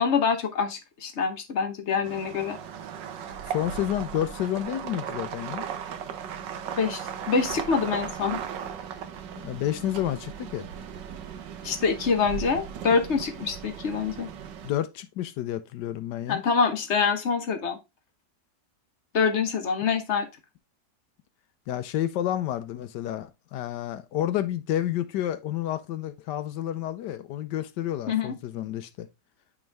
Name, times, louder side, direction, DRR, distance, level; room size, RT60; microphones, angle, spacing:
voice 1, 0.0-2.6 6.8-8.4 11.6-14.3 16.3-17.8 19.1-20.3 28.1-28.3, left 5 dB, 45° left, 1.0 m, -25 dB
sound 1, 2.0-14.7, right 8 dB, 80° right, 1.5 m, -37 dB
voice 2, 3.5-5.6 9.4-10.7 14.6-16.4 21.7-29.1, left 12 dB, 75° left, 1.2 m, -30 dB
8.5 x 3.6 x 3.3 m
omnidirectional pair, 1.9 m